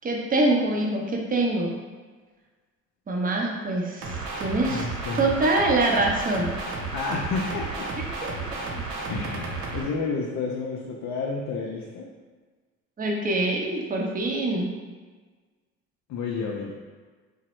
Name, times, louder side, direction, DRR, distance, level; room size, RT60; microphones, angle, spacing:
voice 1, 0.0-1.7 3.1-4.9 5.1-6.5 8.0-8.9 13.0-14.7, right 2 dB, 25° right, 0 dB, 0.6 m, -25 dB
sound 1, 4.0-9.8, right 3 dB, 85° right, 0.6 m, -32 dB
voice 2, 4.7-5.3 6.9-7.9 9.1-12.1 16.1-16.7, left 4 dB, 55° left, -2 dB, 0.5 m, -30 dB
2.9 x 2.1 x 3.0 m, 1.4 s
supercardioid pair, 65°, 34 cm